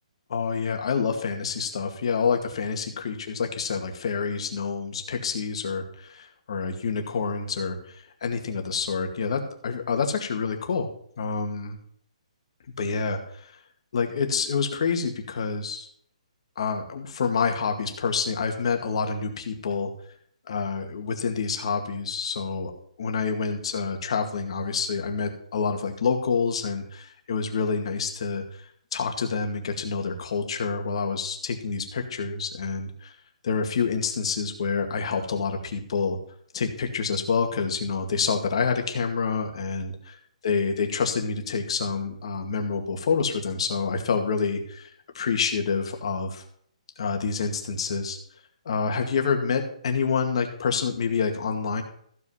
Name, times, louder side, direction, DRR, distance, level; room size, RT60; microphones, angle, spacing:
voice 1, 0.3-10.9 11.2-11.8 12.8-13.5 13.9-15.9 16.6-19.9 20.5-22.7 23.0-28.7 28.9-33.1 33.4-36.2 36.5-40.2 40.4-44.9 45.1-46.4 47.0-48.2 48.7-51.8, left 5 dB, 50° left, 4 dB, 2.1 m, -27 dB
14.5 x 5.5 x 5.7 m, 0.65 s
hypercardioid pair, 170°, 4 cm